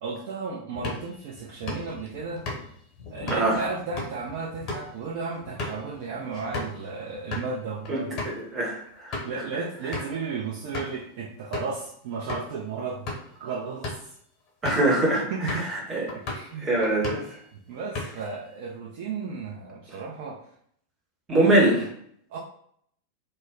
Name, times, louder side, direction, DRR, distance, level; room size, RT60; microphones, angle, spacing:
voice 1, 0.0-2.4 3.1-8.3 9.2-13.1 13.4-14.0 15.3-15.7 16.3-16.8 17.7-20.4 21.4-21.9 22.3-22.4, right 4 dB, 50° right, -3 dB, 0.4 m, -34 dB
sound 1, 0.7-6.8 7.2-7.5 7.8-8.4 8.9-9.4 9.9-10.2 10.7-11.0 11.5-11.8 12.3-12.5 12.9-13.3 13.7-14.1 14.6-14.9 15.5-15.8 16.1-16.5 16.8-17.4 17.7-18.4, left 3 dB, 35° left, 0.8 m, -35 dB
voice 2, 3.3-3.6 7.9-9.2 14.6-16.2 16.6-17.2 21.3-21.8, right 1 dB, 20° right, -2 dB, 0.8 m, -23 dB
2.1 x 2.1 x 3.5 m, 0.64 s
figure-of-eight pair, 90°, 0 cm